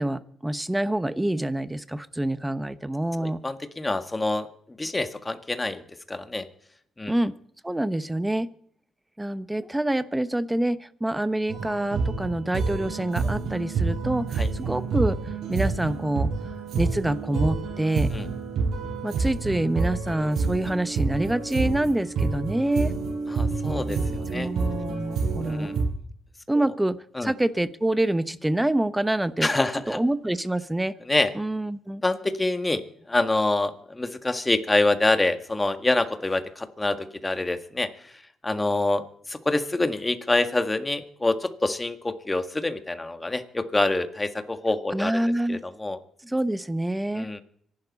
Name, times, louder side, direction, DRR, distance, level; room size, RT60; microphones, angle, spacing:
voice 1, 0.0-3.4 7.1-7.3 7.6-8.5 9.2-15.2 15.5-16.3 16.7-18.1 19.0-22.9 24.3-25.7 26.5-29.5 29.9-30.9 31.3-32.0 44.9-45.6 46.2-47.3, right 1 dB, 10° right, 13 dB, 1.0 m, -26 dB
voice 2, 3.2-4.5 4.8-5.8 6.1-6.5 7.0-7.1 14.4-14.5 18.1-18.2 23.3-24.5 25.4-25.7 27.1-27.3 29.4-30.0 31.1-31.3 32.0-32.8 33.1-37.0 37.2-37.9 38.4-39.0 39.3-45.2 45.5-46.0 47.1-47.4, left 2 dB, 15° left, 8 dB, 1.7 m, -26 dB
sound 1, 11.5-25.9, right 4 dB, 75° right, 6.1 m, -28 dB
25.5 x 12.0 x 4.2 m, 0.64 s
cardioid pair, 95°, 0 cm